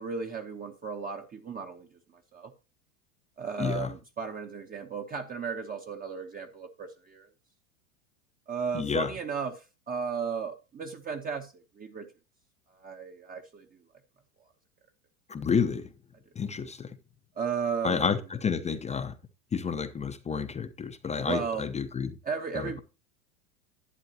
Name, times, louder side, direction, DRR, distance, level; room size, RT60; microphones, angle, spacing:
voice 1, 0.0-1.9 2.3-2.5 3.4-7.3 8.5-12.1 12.8-13.7 17.4-18.1 21.2-21.6 22.2-22.8, right 6 dB, 20° right, 0.9 m, -35 dB
voice 2, 3.6-3.9 8.7-9.1 15.3-15.9 16.4-16.9 17.8-19.1 19.5-22.2 22.5-22.8, left 6 dB, 15° left, 0.7 m, -30 dB
11.0 x 9.0 x 2.8 m
hypercardioid pair, 100°, 43 cm